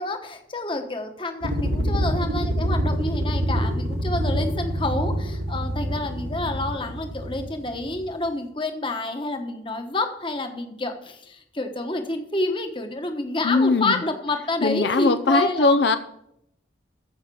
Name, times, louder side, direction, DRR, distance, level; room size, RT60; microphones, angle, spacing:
voice 1, 0.0-15.7, left 2 dB, 25° left, 6 dB, 1.2 m, -28 dB
sound 1, 1.4-8.1, equal, 80° right, 2.1 m, -26 dB
voice 2, 13.4-14.0 14.6-16.0, left 3 dB, 65° left, 10 dB, 0.6 m, -20 dB
14.5 x 5.7 x 6.9 m, 0.76 s
head